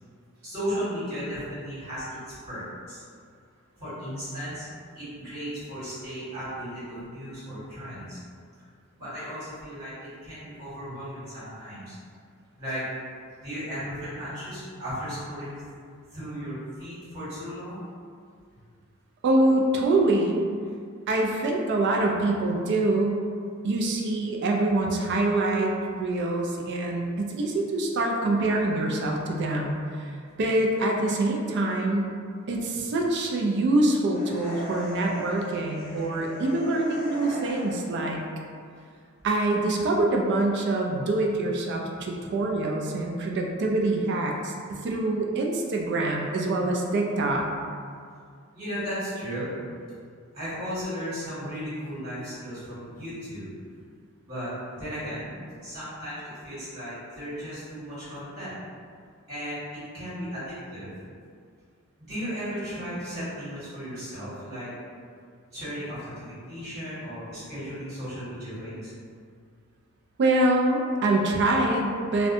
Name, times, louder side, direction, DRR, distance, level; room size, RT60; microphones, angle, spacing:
voice 1, 0.4-3.0 3.8-4.7 4.9-8.2 9.0-11.9 12.6-12.8 13.4-15.6 16.1-17.8 48.5-49.5 50.3-53.5 54.2-55.4 55.6-58.5 59.3-60.9 62.0-64.7 65.5-68.9, equal, 30° right, -13 dB, 1.4 m, -35 dB
voice 2, 19.2-20.4 21.1-23.2 23.6-25.7 26.0-30.1 30.4-32.1 32.5-38.2 39.2-47.5 70.2-72.3, right 2 dB, 55° right, 1 dB, 0.3 m, -25 dB
Magic Death, 34.1-38.0, equal, 35° left, 1.0 m, -39 dB
2.5 x 2.1 x 2.6 m, 2.2 s
head